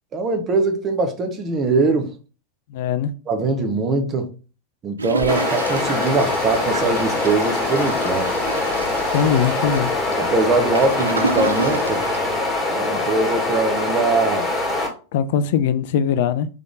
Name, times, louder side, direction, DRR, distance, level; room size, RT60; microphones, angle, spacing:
voice 1, 0.1-2.1 3.3-4.3 4.8-8.3 10.2-12.0 12.7-14.5, right 3 dB, 25° right, 0.9 m, -22 dB
voice 2, 2.7-3.1 9.1-9.9 15.1-16.5, left 8 dB, 50° left, 0.4 m, -20 dB
Toilet flush, 5.0-13.0 13.5-13.6 13.8-13.9, right 3 dB, 75° right, 0.4 m, -30 dB
sound 1, 5.2-14.9, left 2 dB, 5° left, 1.9 m, -23 dB
sound 2, 5.6-12.4, left 4 dB, 25° left, 1.1 m, -35 dB
3.7 x 3.5 x 3.8 m
figure-of-eight pair, 90°, 0 cm